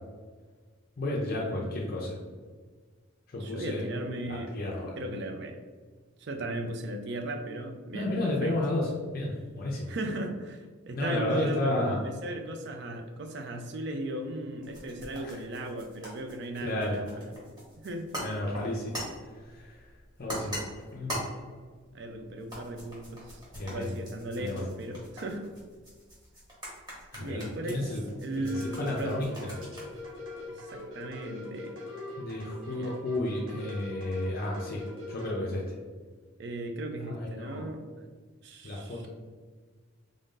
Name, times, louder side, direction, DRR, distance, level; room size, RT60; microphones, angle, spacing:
voice 1, 1.0-2.2 3.3-3.8 4.3-4.9 7.9-9.9 10.9-12.0 15.2-15.4 16.6-17.0 18.2-18.9 19.4-19.8 20.2-20.6 20.9-21.2 23.5-23.9 24.4-24.6 27.1-28.0 28.4-29.5 32.2-34.8 35.1-35.6 37.1-37.6 38.6-39.1, left 1 dB, 45° left, -2 dB, 0.5 m, -32 dB
voice 2, 3.4-4.5 5.0-5.6 6.2-8.1 8.4-8.5 9.9-17.3 17.8-18.1 21.9-23.4 23.7-25.4 27.2-29.2 30.5-31.7 32.6-32.9 36.4-38.1 38.4-39.1, right 1 dB, 55° right, 5 dB, 0.4 m, -37 dB
sound 1, 14.6-31.1, equal, 20° right, 1.1 m, -43 dB
sound 2, 28.4-35.3, left 2 dB, 75° right, 1.1 m, -42 dB
3.6 x 2.6 x 3.6 m, 1.5 s
head